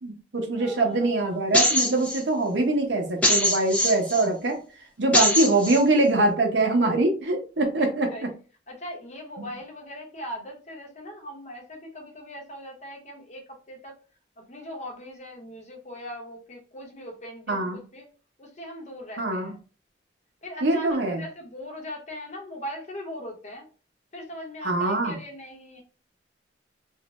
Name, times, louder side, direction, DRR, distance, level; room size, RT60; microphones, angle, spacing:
voice 1, 0.0-4.6 5.0-8.1 9.4-9.5 17.5-17.8 19.2-19.5 20.6-21.2 24.6-25.1, right 2 dB, 75° right, 3 dB, 0.7 m, -23 dB
voice 2, 0.5-1.4 7.6-7.7 8.1-8.2 8.7-14.0 14.4-18.1 18.4-19.6 20.4-23.7 24.1-25.8, equal, 40° left, 1 dB, 0.8 m, -40 dB
sound 1, 1.5-2.2 3.2-4.2 5.1-5.8, left 1 dB, 5° left, 0.5 m, -22 dB
2.5 x 2.1 x 2.9 m, 0.37 s
head